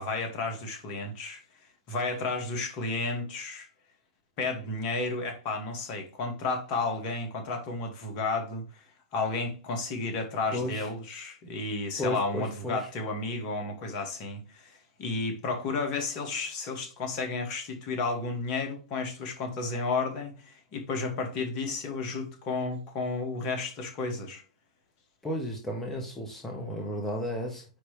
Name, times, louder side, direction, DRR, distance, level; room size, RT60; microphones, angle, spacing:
voice 1, 0.0-1.4 1.9-3.7 4.4-8.8 9.1-24.4, left 3 dB, 40° left, 2.0 m, -32 dB
voice 2, 10.5-10.9 12.0-12.9 25.2-27.6, left 1 dB, 10° left, 1.3 m, -33 dB
9.8 x 3.3 x 3.2 m
figure-of-eight pair, 100°, 3 cm